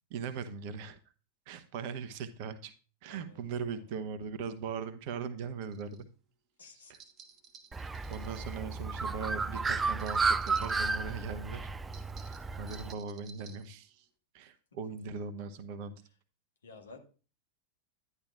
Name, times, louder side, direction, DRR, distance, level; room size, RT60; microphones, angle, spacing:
voice 1, 0.1-1.0 1.5-2.7 3.0-6.1 6.9-7.0 8.1-11.7 12.2-14.1 14.3-15.9, right 6 dB, 45° right, 11 dB, 0.9 m, -40 dB
voice 2, 3.1-3.8 6.6-6.9 14.9-15.0 16.6-17.0, left 3 dB, 70° left, 4 dB, 1.6 m, -53 dB
sound 1, 5.7-6.0 6.9-8.6 9.9-11.0 11.9-13.7, right 5 dB, 30° right, 1.2 m, -54 dB
Bird, 7.7-12.9, right 4 dB, 15° right, 0.4 m, -33 dB
11.0 x 10.5 x 2.5 m, 0.36 s
figure-of-eight pair, 90°, 0 cm